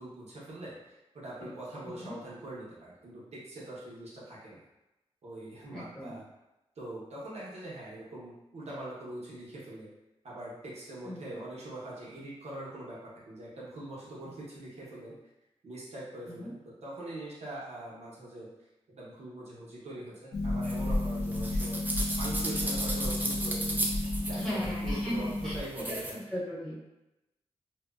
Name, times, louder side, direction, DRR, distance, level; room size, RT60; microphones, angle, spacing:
voice 1, 0.0-4.6 5.2-6.2 6.8-9.9 10.2-15.1 15.6-16.5 16.8-18.5 18.9-21.8 22.2-26.2, right 1 dB, 75° right, -7 dB, 0.7 m, -43 dB
voice 2, 5.7-6.1 11.0-11.2 16.3-16.5 24.3-26.8, equal, 5° left, -9 dB, 1.0 m, -37 dB
Harp, 20.3-25.6, left 1 dB, 75° left, 0.4 m, -32 dB
sound 1, 20.6-26.1, right 1 dB, 15° right, 0.4 m, -36 dB
2.7 x 2.1 x 2.2 m, 0.95 s
wide cardioid pair, 100°, 11 cm